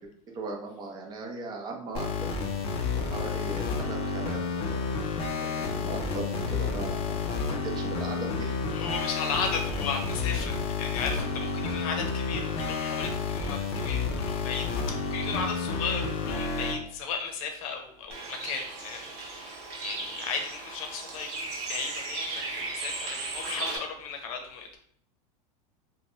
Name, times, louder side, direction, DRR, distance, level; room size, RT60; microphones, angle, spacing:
voice 1, 0.3-2.3 2.9-4.9 5.6-7.3 7.6-8.6, right 2 dB, 20° right, 1 dB, 0.5 m, -38 dB
sound 1, 1.9-16.8, left 4 dB, 30° left, 0.4 m, -30 dB
voice 2, 8.7-24.8, left 5 dB, 70° left, 4 dB, 0.7 m, -35 dB
Bird, 18.1-23.8, right 3 dB, 55° right, 0.9 m, -36 dB
2.8 x 2.2 x 3.1 m, 0.65 s
supercardioid pair, 135°, 19 cm